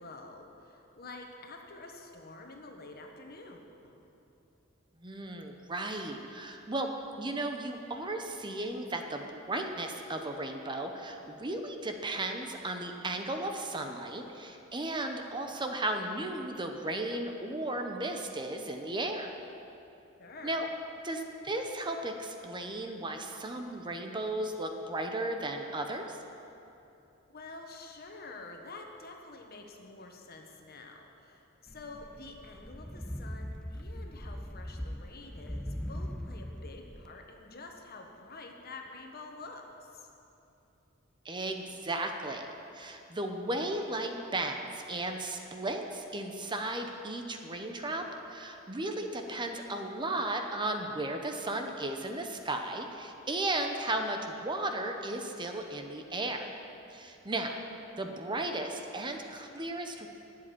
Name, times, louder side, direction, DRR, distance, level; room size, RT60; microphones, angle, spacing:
voice 1, 0.0-4.1 20.2-20.6 27.3-40.1 57.4-57.7, left 3 dB, 50° left, 2 dB, 1.4 m, -48 dB
voice 2, 5.0-6.9 7.2-19.3 20.4-20.7 21.0-26.2 41.2-42.5 42.7-56.4 56.9-57.5 58.0-60.1, right 2 dB, 25° right, 4 dB, 0.8 m, -35 dB
sound 1, 31.7-37.1, equal, 5° left, 0.3 m, -40 dB
12.0 x 7.7 x 9.9 m, 2.9 s
head